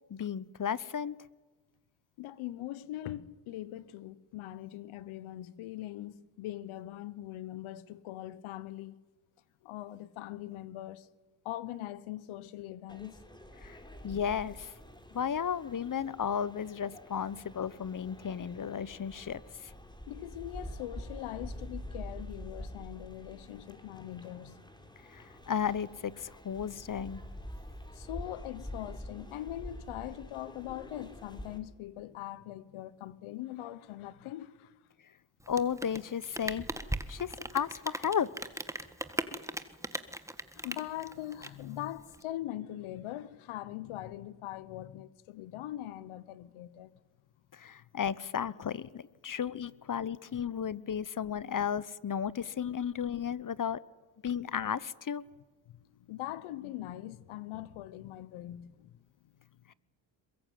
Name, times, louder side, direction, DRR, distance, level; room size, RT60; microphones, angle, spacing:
voice 1, 0.1-1.2 13.6-13.8 14.0-14.7 15.1-19.7 25.1-27.2 35.5-36.6 37.1-38.3 47.5-53.8 54.2-55.2, left 8 dB, 40° left, 1.0 m, -34 dB
voice 2, 2.2-9.0 9.6-11.1 11.4-13.2 20.1-24.6 27.9-34.8 40.5-46.9 55.7-58.9, left 14 dB, 90° left, 1.1 m, -42 dB
sound 1, 12.9-31.6, equal, 10° left, 4.6 m, -47 dB
Rain, 35.4-42.2, right 1 dB, 5° right, 1.7 m, -39 dB
22.0 x 22.0 x 9.5 m
supercardioid pair, 60°, 48 cm